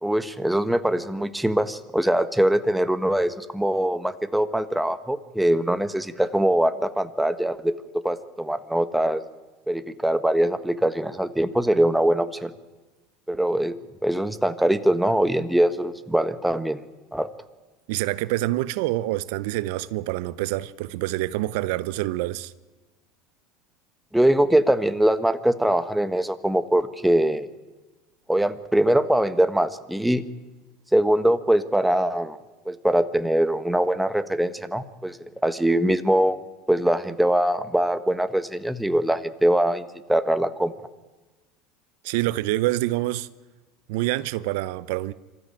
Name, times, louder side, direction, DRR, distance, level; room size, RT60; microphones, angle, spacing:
voice 1, 0.0-7.7 8.0-9.2 9.7-12.5 13.3-13.7 14.0-16.8 17.1-17.3 24.1-27.5 28.3-30.2 30.9-32.4 32.6-35.2 35.4-36.4 36.7-40.7, right 1 dB, 5° right, 1.3 m, -22 dB
voice 2, 17.9-22.5 42.0-43.3 43.9-45.1, right 17 dB, 75° right, 0.6 m, -26 dB
25.5 x 14.0 x 9.1 m
hypercardioid pair, 90°, 0 cm